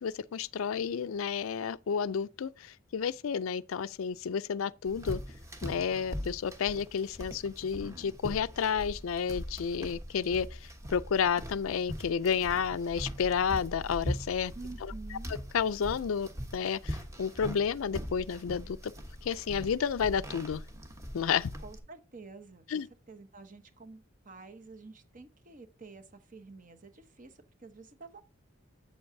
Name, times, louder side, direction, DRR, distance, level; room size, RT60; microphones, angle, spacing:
voice 1, 0.0-5.2 5.6-14.5 15.5-18.8 19.2-20.6 21.1-21.5 22.7-22.9, left 7 dB, 85° left, 0.4 m, -31 dB
sound 1, 4.8-21.8, equal, 15° right, 1.1 m, -41 dB
voice 2, 14.5-15.4 21.6-28.2, right 3 dB, 40° right, 1.0 m, -49 dB
7.9 x 7.8 x 2.7 m
head